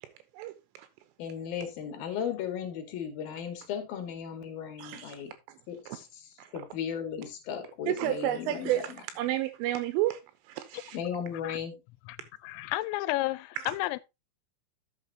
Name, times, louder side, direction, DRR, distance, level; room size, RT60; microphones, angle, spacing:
voice 1, 0.3-0.9 4.8-5.2 6.4-6.5 7.9-10.2 10.5-11.0 13.6-13.7, right 14 dB, 85° right, 3.3 m, -31 dB
voice 2, 1.2-5.3 5.7-8.8 10.9-11.8, left 8 dB, 55° left, 3.1 m, -36 dB
voice 3, 12.4-14.0, left 18 dB, 85° left, 3.3 m, -31 dB
12.5 x 7.4 x 2.9 m
omnidirectional pair, 5.9 m